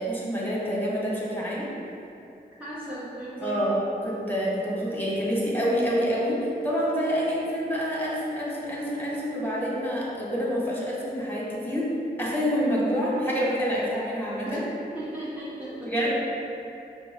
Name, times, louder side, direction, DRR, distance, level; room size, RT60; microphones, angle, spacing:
voice 1, 0.0-1.7 3.4-6.4 6.6-11.9 12.2-14.6 15.8-16.2, equal, 10° left, -6 dB, 1.1 m, -27 dB
voice 2, 2.6-3.7 14.5-14.7 14.9-15.9, right 1 dB, 10° right, -10 dB, 0.6 m, -36 dB
4.8 x 2.0 x 3.7 m, 2.7 s
cardioid pair, 50°, 18 cm